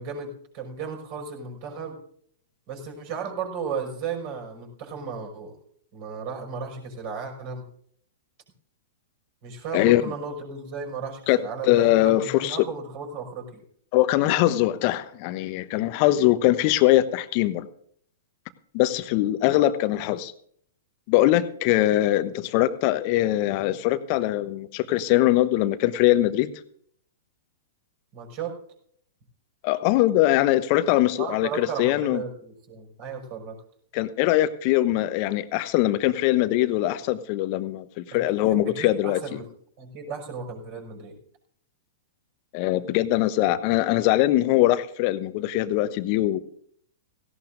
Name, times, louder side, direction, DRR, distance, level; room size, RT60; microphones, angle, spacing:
voice 1, 0.0-2.0 2.7-5.6 5.9-7.6 9.4-13.6 28.1-28.6 31.2-33.6 38.1-38.2 38.7-39.5 39.8-41.2 43.4-43.5, right 5 dB, 45° right, 1 dB, 5.8 m, -35 dB
voice 2, 11.6-12.6 13.9-17.7 18.7-20.3 21.1-26.5 29.6-32.2 33.9-39.2 42.5-46.4, left 15 dB, 45° left, 13 dB, 0.9 m, -22 dB
17.5 x 16.5 x 2.6 m, 0.64 s
figure-of-eight pair, 105°, 0 cm